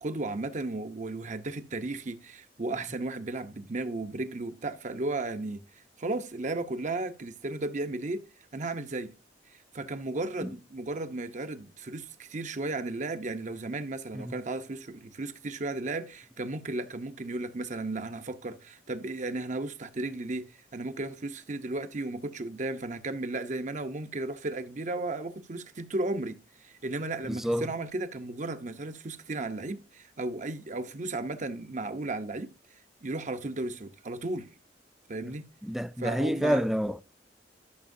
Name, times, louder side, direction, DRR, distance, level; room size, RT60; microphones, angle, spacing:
voice 1, 0.0-5.6 6.0-8.2 8.5-9.1 9.7-20.5 20.7-32.5 33.0-34.5 35.1-35.4 36.0-36.6, right 2 dB, 45° right, 0.8 m, -34 dB
voice 2, 27.2-27.7 35.6-37.0, equal, ahead, 0.3 m, -28 dB
13.0 x 6.1 x 2.6 m
head